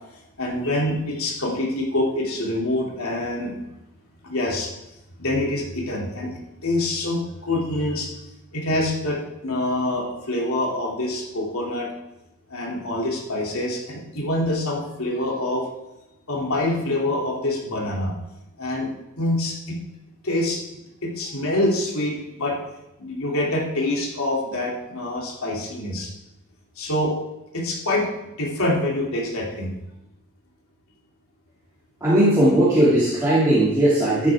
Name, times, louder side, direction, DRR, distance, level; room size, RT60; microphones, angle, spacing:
voice 1, 0.4-3.5 4.2-4.7 5.2-6.3 6.6-8.1 8.5-11.9 12.5-15.6 16.3-18.1 18.6-18.9 19.2-19.8 20.2-20.6 21.0-22.6 23.0-26.1 26.8-27.1 27.5-28.1 28.4-29.7, left 1 dB, 75° left, -2 dB, 2.9 m, -25 dB
voice 2, 32.0-34.3, right 1 dB, 15° right, -9 dB, 2.4 m, -18 dB
12.5 x 9.9 x 3.6 m, 0.94 s
head